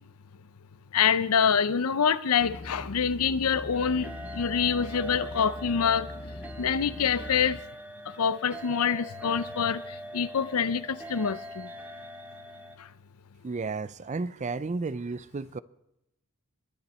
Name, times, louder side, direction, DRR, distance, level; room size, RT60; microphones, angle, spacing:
voice 1, 0.9-6.1 6.6-7.6 8.2-9.8 10.1-11.7, left 7 dB, 90° left, 0.6 m, -26 dB
sound 1, 2.4-7.6, left 1 dB, 35° left, 0.7 m, -42 dB
sound 2, 3.7-12.8, equal, 5° right, 0.8 m, -42 dB
voice 2, 13.4-15.6, right 3 dB, 35° right, 0.4 m, -33 dB
21.5 x 9.8 x 4.3 m
head